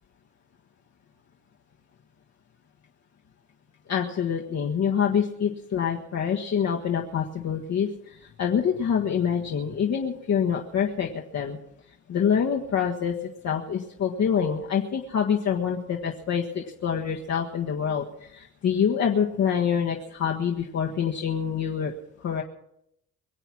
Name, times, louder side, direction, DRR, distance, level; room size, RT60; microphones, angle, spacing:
voice 1, 3.9-11.6 12.1-13.1 13.4-21.9 22.2-22.4, left 7 dB, 60° left, 0 dB, 1.6 m, -26 dB
23.5 x 8.0 x 6.1 m, 0.77 s
cardioid pair, 90°, 30 cm